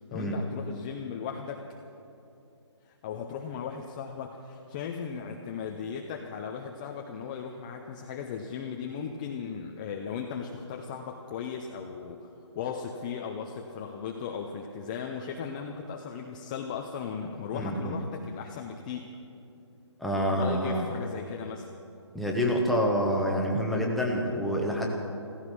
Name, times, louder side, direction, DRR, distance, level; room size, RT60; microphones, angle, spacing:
voice 1, 0.1-1.6 2.9-12.3 12.6-19.1 20.3-21.7, left 6 dB, 15° left, 2 dB, 0.5 m, -37 dB
voice 2, 17.5-18.0 20.0-20.9 22.1-24.9, equal, ahead, -1 dB, 0.9 m, -27 dB
15.0 x 14.5 x 6.2 m, 2.7 s
hypercardioid pair, 160°, 15 cm